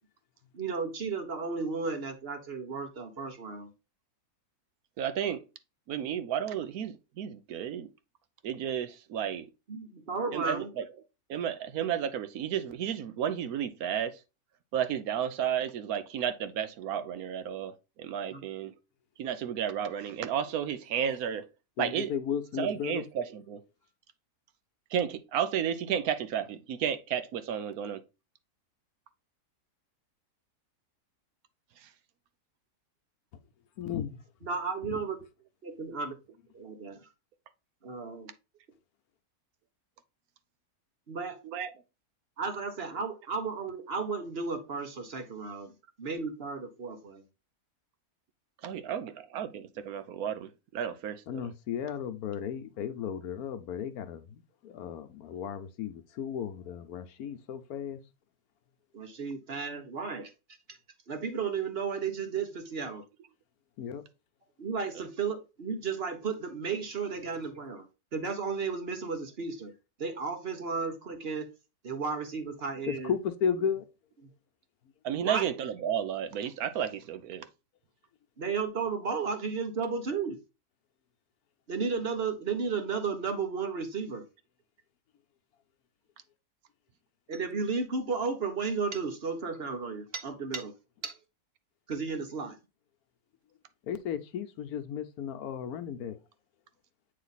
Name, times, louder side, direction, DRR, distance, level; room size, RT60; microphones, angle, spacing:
voice 1, 0.5-3.7 9.7-10.7 18.3-18.4 34.4-35.2 35.6-36.2 36.5-37.0 37.8-38.3 41.1-41.4 42.4-45.7 46.0-47.2 58.9-60.3 61.1-63.0 64.6-69.7 70.0-71.5 71.8-73.2 75.2-75.5 78.4-80.4 81.7-84.3 87.3-90.7 91.0-91.1 91.9-92.6, right 5 dB, 45° right, 1.2 m, -33 dB
voice 2, 5.0-5.4 5.9-7.9 8.4-9.5 10.3-10.8 11.3-14.1 14.7-17.7 18.0-18.7 19.2-21.5 21.8-22.1 22.6-23.6 24.9-28.0 41.4-41.7 48.6-51.2 75.0-77.5, right 9 dB, 75° right, 1.1 m, -32 dB
voice 3, 21.8-23.1 33.8-34.2 34.9-35.0 51.3-58.0 63.8-64.0 72.9-73.8 93.9-96.2, left 8 dB, 75° left, 1.2 m, -34 dB
8.5 x 3.2 x 4.0 m
omnidirectional pair, 1.6 m